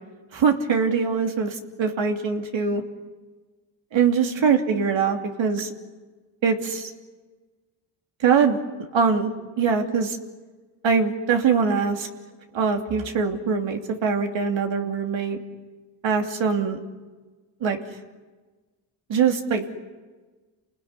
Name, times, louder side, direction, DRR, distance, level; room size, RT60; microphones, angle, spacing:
voice 1, 0.3-2.8 3.9-5.7 6.4-6.9 8.2-8.6 8.9-9.3 9.6-10.2 10.8-12.1 12.5-15.4 16.0-16.8 17.6-17.8 19.1-19.6, right 6 dB, 75° right, 3 dB, 3.0 m, -22 dB
29.5 x 20.0 x 9.8 m, 1.3 s
cardioid pair, 95°, 47 cm